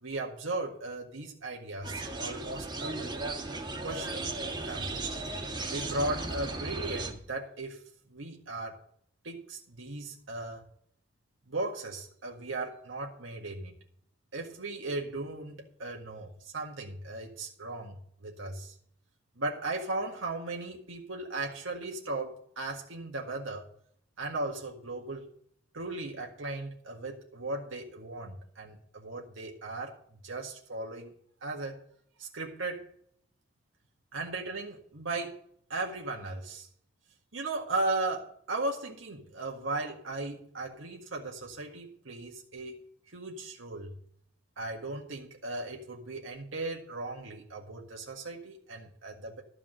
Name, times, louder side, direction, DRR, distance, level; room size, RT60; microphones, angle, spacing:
voice 1, 0.0-3.1 3.8-4.3 4.6-4.9 5.7-7.8 8.1-8.8 9.2-10.6 11.5-13.7 14.3-18.8 19.4-23.7 24.2-25.3 25.7-30.0 30.2-31.1 31.4-31.8 32.2-32.9 34.1-35.4 35.7-36.7 37.3-42.8 43.1-44.0 44.6-49.4, right 2 dB, 90° right, 0 dB, 1.8 m, -37 dB
sound 1, 1.8-7.1, right 2 dB, 25° right, 1.6 m, -36 dB
13.0 x 4.9 x 7.6 m, 0.63 s
head